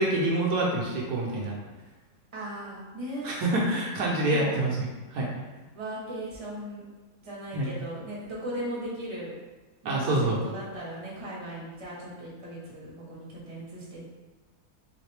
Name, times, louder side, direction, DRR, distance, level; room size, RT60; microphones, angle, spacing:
voice 1, 0.0-1.5 3.2-4.7 5.1-5.3 7.5-7.7 9.8-10.4, right 1 dB, 70° right, -4 dB, 1.2 m, -26 dB
voice 2, 2.3-3.3 4.3-4.6 5.7-6.8 7.2-9.3 9.8-14.1, right 1 dB, 20° right, -6 dB, 0.9 m, -37 dB
3.6 x 3.2 x 3.3 m, 1.2 s
omnidirectional pair, 1.8 m